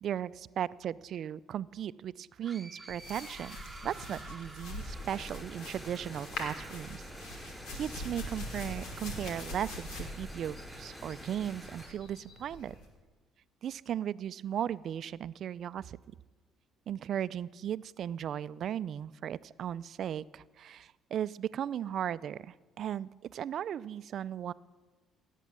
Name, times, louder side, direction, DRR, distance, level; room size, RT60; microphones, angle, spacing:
voice 1, 0.0-3.6 3.8-7.0 7.4-12.7 13.6-16.0 16.9-24.5, right 10 dB, 60° right, 17 dB, 0.4 m, -37 dB
sound 1, 2.4-6.1, right 3 dB, 20° right, 1.0 m, -50 dB
sound 2, 2.9-12.9, left 1 dB, 80° left, 2.8 m, -43 dB
sound 3, 4.4-11.9, equal, ahead, 4.4 m, -48 dB
16.5 x 8.3 x 7.6 m, 1.3 s
supercardioid pair, 80°, 0 cm